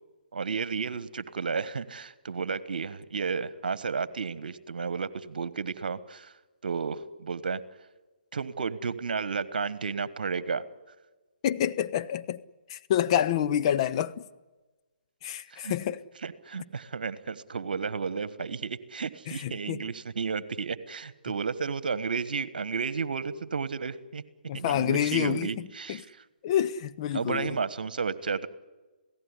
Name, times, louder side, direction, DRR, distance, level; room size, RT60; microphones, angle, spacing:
voice 1, 0.3-6.3 6.6-7.6 8.3-10.6 15.5-15.7 16.2-24.2 24.5-26.2 27.1-28.5, right 5 dB, 65° right, 1.4 m, -32 dB
voice 2, 11.4-12.4 12.7-14.1 15.2-16.0 19.3-19.8 24.5-25.5 25.9-26.0 26.4-27.5, left 10 dB, 35° left, 0.8 m, -27 dB
27.0 x 17.0 x 9.8 m
figure-of-eight pair, 140°, 5 cm